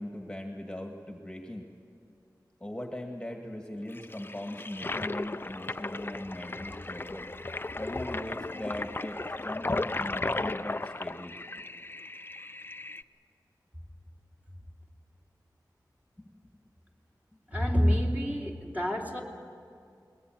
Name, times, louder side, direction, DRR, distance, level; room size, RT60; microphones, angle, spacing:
voice 1, 0.0-1.7 2.6-7.3 7.8-11.4 16.2-16.3, left 1 dB, 10° left, 3 dB, 1.9 m, -40 dB
Toilet flush, 3.9-13.0, left 2 dB, 30° left, 0.5 m, -35 dB
voice 2, 17.5-19.2, equal, 20° right, -1 dB, 3.0 m, -27 dB
21.5 x 20.0 x 9.2 m, 2.5 s
wide cardioid pair, 75°, 7 cm